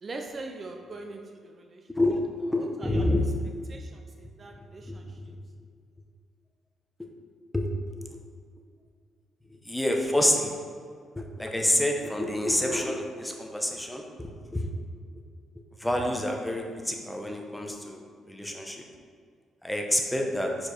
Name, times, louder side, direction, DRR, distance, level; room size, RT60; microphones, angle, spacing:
voice 1, 0.0-1.9 2.5-3.1 3.7-5.3, right 3 dB, 35° right, 3 dB, 0.6 m, -42 dB
voice 2, 1.9-3.2 4.9-5.0 7.5-7.7 8.1-8.2 9.7-10.6 11.1-14.7 15.8-18.0 18.3-18.8 19.6-20.5, left 1 dB, 5° left, 1 dB, 0.8 m, -28 dB
4.6 x 4.5 x 4.9 m, 2.1 s
cardioid pair, 90°, 0 cm